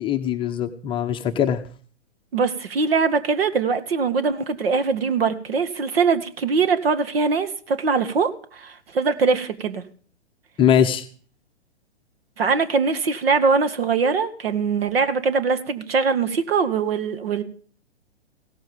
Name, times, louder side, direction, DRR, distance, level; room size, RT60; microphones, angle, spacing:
voice 1, 0.0-1.6 10.6-11.0, left 9 dB, 15° left, 6 dB, 0.8 m, -21 dB
voice 2, 2.3-9.8 12.4-17.4, right 5 dB, 60° right, 11 dB, 1.8 m, -22 dB
17.0 x 13.5 x 5.3 m, 0.43 s
figure-of-eight pair, 120°, 34 cm